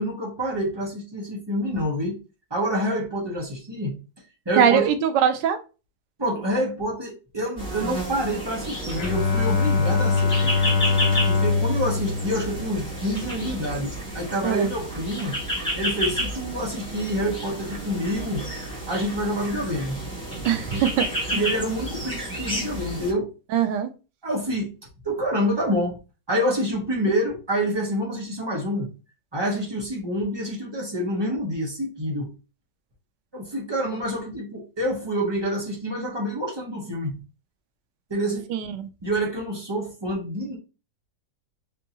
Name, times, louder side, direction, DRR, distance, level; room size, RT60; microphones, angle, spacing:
voice 1, 0.0-2.2 2.5-3.9 4.5-4.9 6.2-10.6 11.3-15.4 15.7-18.4 18.9-20.0 20.7-20.8 21.3-23.3 24.2-24.7 25.0-26.0 26.3-28.9 29.3-32.3 33.3-37.1 38.1-38.4 39.0-40.6, equal, 25° right, -3 dB, 0.6 m, -27 dB
voice 2, 4.6-5.6 14.4-14.7 20.4-21.1 21.3-21.4 23.5-23.9 38.5-38.9, right 8 dB, 90° right, 9 dB, 1.2 m, -21 dB
sound 1, 7.6-23.1, equal, 5° left, 1.0 m, -31 dB
Bowed string instrument, 8.9-13.4, left 4 dB, 85° left, 1.2 m, -23 dB
3.6 x 2.7 x 2.8 m, 0.32 s
omnidirectional pair, 1.8 m